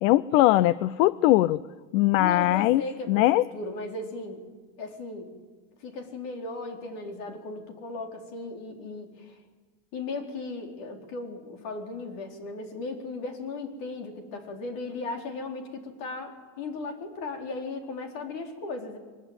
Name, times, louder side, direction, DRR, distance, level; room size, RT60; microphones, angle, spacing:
voice 1, 0.0-1.6 1.9-2.8 3.1-3.4, left 16 dB, 70° left, 19 dB, 0.7 m, -21 dB
voice 2, 2.2-4.4 4.8-5.3 5.8-9.4 9.9-19.0, left 3 dB, 55° left, 4 dB, 4.5 m, -36 dB
23.0 x 21.0 x 9.2 m, 1.4 s
supercardioid pair, 155°, 40 cm